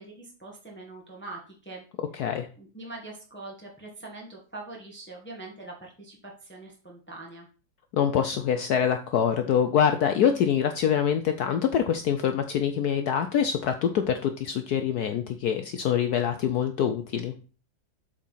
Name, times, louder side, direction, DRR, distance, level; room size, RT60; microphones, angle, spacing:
voice 1, 0.0-1.8 2.6-7.5, right 2 dB, 5° left, -2 dB, 1.5 m, -43 dB
voice 2, 2.1-2.5 7.9-17.3, left 8 dB, 70° left, 7 dB, 1.0 m, -25 dB
7.3 x 4.3 x 5.5 m, 0.37 s
omnidirectional pair, 2.1 m